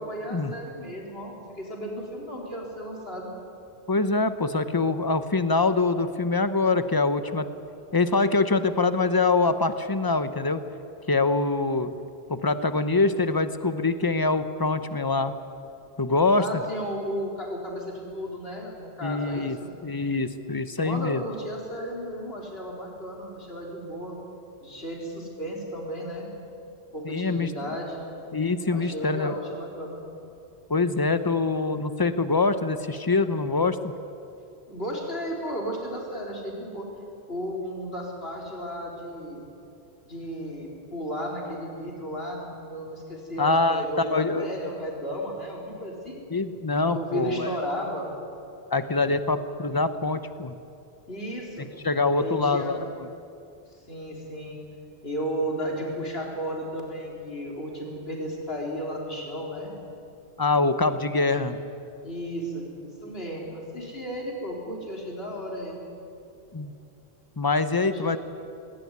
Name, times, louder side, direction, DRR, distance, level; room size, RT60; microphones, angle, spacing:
voice 1, 0.0-3.3 16.4-19.7 20.8-24.2 24.6-26.3 26.9-28.1 28.7-30.0 34.7-36.9 37.3-39.4 40.0-46.2 46.9-48.1 51.1-51.7 52.1-52.8 53.9-54.6 55.0-59.7 61.3-61.5 62.0-65.9 67.9-68.2, equal, 65° left, -1 dB, 4.3 m, -34 dB
voice 2, 3.9-7.5 7.9-10.6 11.1-11.9 12.3-15.3 16.0-16.4 19.0-19.6 19.8-21.2 27.0-27.5 28.3-29.4 30.7-33.9 43.4-44.5 46.3-47.5 48.7-50.5 51.8-52.8 60.4-61.6 66.5-66.7 67.4-68.2, left 3 dB, 20° left, 11 dB, 0.8 m, -24 dB
19.0 x 18.0 x 9.6 m, 2.6 s
omnidirectional pair, 1.1 m